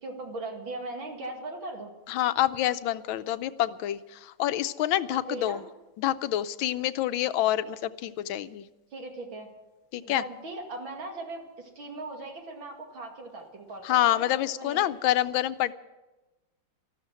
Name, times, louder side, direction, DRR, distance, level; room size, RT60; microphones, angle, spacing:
voice 1, 0.0-1.9 5.1-5.6 8.9-9.5 10.0-14.9, right 2 dB, 85° right, 2 dB, 3.1 m, -39 dB
voice 2, 2.1-5.6 6.0-8.6 9.9-10.2 13.8-15.7, left 13 dB, 85° left, 14 dB, 1.4 m, -27 dB
13.5 x 12.5 x 7.6 m, 1.1 s
omnidirectional pair, 2.1 m